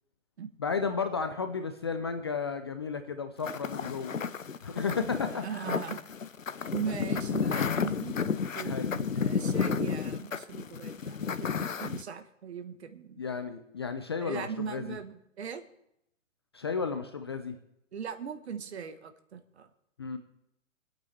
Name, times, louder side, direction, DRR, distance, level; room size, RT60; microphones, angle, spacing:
voice 1, 0.6-4.1 4.6-5.6 8.6-8.9 13.2-15.0 16.5-17.6 20.0-20.2, left 5 dB, 20° left, 8 dB, 0.4 m, -33 dB
sound 1, 3.4-12.0, left 6 dB, 80° left, 0.7 m, -32 dB
voice 2, 5.3-6.0 6.7-13.2 14.2-15.6 17.9-19.7, right 7 dB, 55° right, 10 dB, 1.1 m, -39 dB
26.5 x 8.8 x 3.3 m, 0.77 s
figure-of-eight pair, 120°, 39 cm